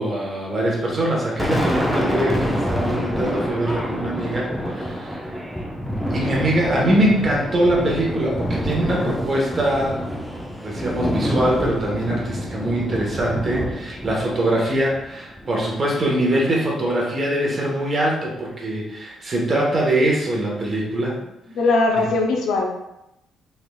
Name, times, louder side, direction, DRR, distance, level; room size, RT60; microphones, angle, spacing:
voice 1, 0.0-5.3 6.1-10.0 10.6-21.2 22.0-22.1, right 1 dB, 40° right, -2 dB, 0.9 m, -23 dB
Thunder, 1.0-15.6, equal, 5° left, 0.5 m, -27 dB
voice 2, 21.5-22.7, left 3 dB, 80° left, 2 dB, 0.5 m, -19 dB
3.1 x 2.6 x 2.2 m, 0.88 s
cardioid pair, 90°, 0 cm